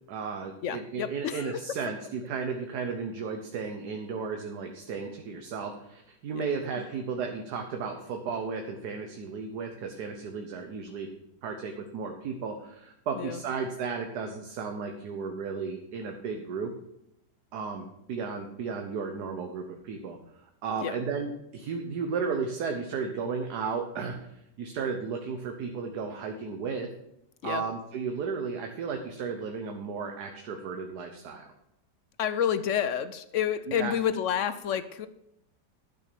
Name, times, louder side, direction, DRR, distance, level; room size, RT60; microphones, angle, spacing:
voice 1, 0.1-11.1 11.4-16.7 17.5-20.2 20.6-26.9 27.4-31.4 33.7-33.9, right 5 dB, 70° right, 4 dB, 1.5 m, -34 dB
voice 2, 0.6-1.8 6.3-6.4 13.2-13.4 20.8-21.0 27.4-27.6 32.2-35.1, left 9 dB, 65° left, 13 dB, 0.8 m, -29 dB
12.0 x 6.4 x 6.8 m, 0.80 s
omnidirectional pair, 1.8 m